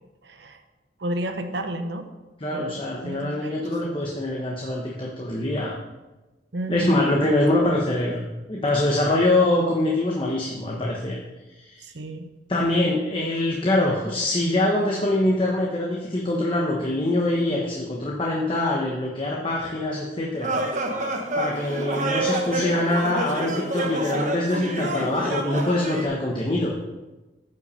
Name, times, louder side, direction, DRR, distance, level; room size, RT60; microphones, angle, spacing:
voice 1, 0.2-0.6 1.0-2.1 2.5-3.5 6.5-6.9 11.8-12.3, right 1 dB, 75° right, 7 dB, 1.0 m, -32 dB
voice 2, 2.4-5.8 6.7-11.2 11.6-11.9 12.5-20.5 21.3-26.7, left 1 dB, 30° left, -3 dB, 1.0 m, -24 dB
sound 1, 20.4-26.1, right 2 dB, 40° right, 1.2 m, -28 dB
9.3 x 5.8 x 5.5 m, 1.1 s
head